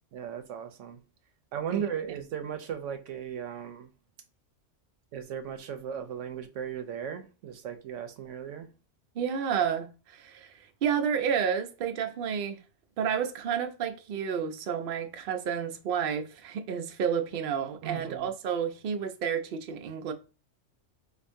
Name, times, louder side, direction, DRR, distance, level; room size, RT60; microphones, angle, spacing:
voice 1, 0.1-1.0 1.5-3.9 5.1-8.7 17.8-18.3, right 8 dB, 90° right, 1.0 m, -36 dB
voice 2, 9.2-12.6 13.0-20.1, right 7 dB, 60° right, 0.7 m, -30 dB
4.5 x 2.5 x 2.6 m
omnidirectional pair, 1.2 m